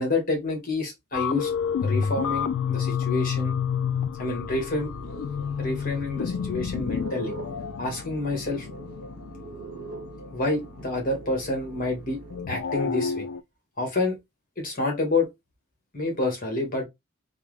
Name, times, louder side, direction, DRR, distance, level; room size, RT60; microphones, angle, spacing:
voice 1, 0.0-1.5 1.8-3.6 4.2-4.9 5.6-7.3 7.8-8.7 10.3-12.2 12.5-13.3 13.8-14.2 14.6-15.3 15.9-16.9, left 2 dB, 45° left, 1.3 m, -28 dB
sound 1, 1.1-12.0 12.3-13.4, left 7 dB, 65° left, 0.3 m, -30 dB
sound 2, 4.4-12.5, right 3 dB, 60° right, 0.8 m, -42 dB
3.3 x 2.0 x 3.3 m
head